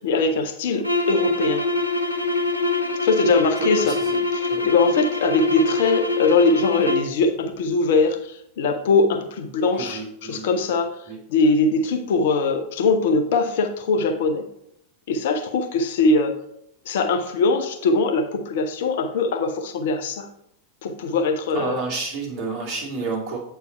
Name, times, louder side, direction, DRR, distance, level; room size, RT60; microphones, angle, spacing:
voice 1, 0.0-1.6 3.0-4.0 4.3-10.9 11.3-14.4 15.1-16.4 16.9-20.3 20.8-21.8, left 3 dB, 55° left, 5 dB, 0.8 m, -21 dB
sound 1, 0.8-7.2, left 3 dB, 90° right, 0.7 m, -24 dB
voice 2, 3.6-4.2 4.5-4.7 9.8-10.6 11.1-11.2 21.5-23.4, right 4 dB, 40° right, -3 dB, 2.5 m, -30 dB
8.1 x 4.6 x 4.5 m, 0.74 s
figure-of-eight pair, 90°, 0 cm